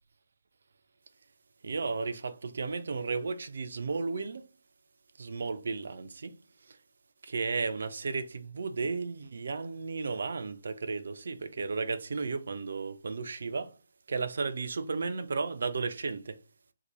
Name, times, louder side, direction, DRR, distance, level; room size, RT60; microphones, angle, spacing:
voice 1, 1.6-4.5 5.2-6.4 7.2-13.8 14.1-16.4, right 4 dB, 55° right, 0.3 m, -34 dB
2.7 x 2.1 x 3.0 m
figure-of-eight pair, 140°, 0 cm